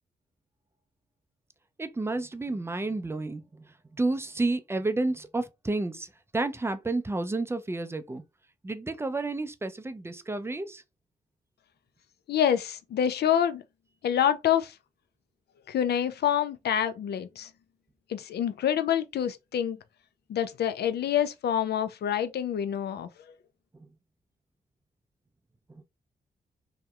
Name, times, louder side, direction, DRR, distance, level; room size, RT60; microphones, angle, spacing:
voice 1, 1.8-3.4 4.0-6.1 6.3-8.2 8.6-10.8, right 2 dB, 15° right, 0.4 m, -30 dB
voice 2, 12.3-13.6 14.0-14.7 15.7-17.5 18.1-19.8 20.3-23.1, left 9 dB, 70° left, 0.4 m, -27 dB
2.6 x 2.0 x 2.3 m
supercardioid pair, 45°, 18 cm